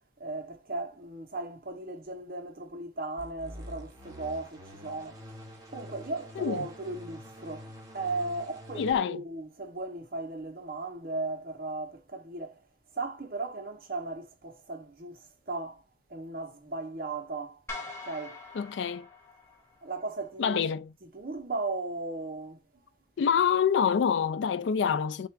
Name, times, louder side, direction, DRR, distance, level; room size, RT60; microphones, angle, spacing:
voice 1, 0.2-5.2 5.7-12.5 13.0-15.8 16.1-17.6 18.1-18.4 19.8-20.6 21.1-22.6, right 3 dB, 50° right, 0.8 m, -36 dB
sound 1, 3.2-9.0, equal, 20° right, 0.9 m, -46 dB
voice 2, 6.4-6.7 8.7-9.2 18.5-19.1 20.4-20.9 23.2-25.3, left 7 dB, 80° left, 0.3 m, -26 dB
sound 2, 17.7-20.0, left 3 dB, 15° left, 0.9 m, -43 dB
3.4 x 2.5 x 4.5 m
head